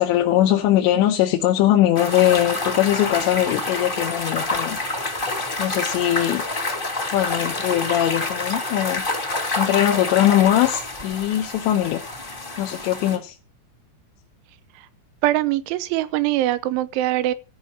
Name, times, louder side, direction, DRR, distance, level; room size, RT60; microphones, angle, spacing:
voice 1, 0.0-4.8 5.6-6.4 7.1-9.0 9.6-12.0 12.6-13.3, left 13 dB, 75° left, 3.1 m, -20 dB
sound 1, 1.9-13.2, left 2 dB, 20° left, 1.3 m, -28 dB
voice 2, 15.2-17.3, right 15 dB, 85° right, 3.2 m, -22 dB
14.0 x 5.2 x 7.3 m
omnidirectional pair, 5.4 m